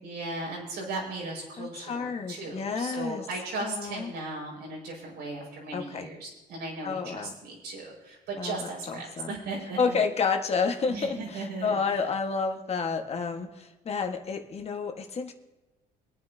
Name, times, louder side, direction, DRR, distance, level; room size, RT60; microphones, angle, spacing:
voice 1, 0.0-10.0 10.8-12.0, right 2 dB, 85° right, -2 dB, 5.5 m, -37 dB
voice 2, 1.6-3.2 3.6-4.1 5.7-6.1 6.8-7.3 8.4-9.3 9.8-15.3, left 5 dB, 40° left, 4 dB, 1.5 m, -30 dB
24.5 x 9.4 x 2.8 m, 1.1 s
cardioid pair, 110°, 17 cm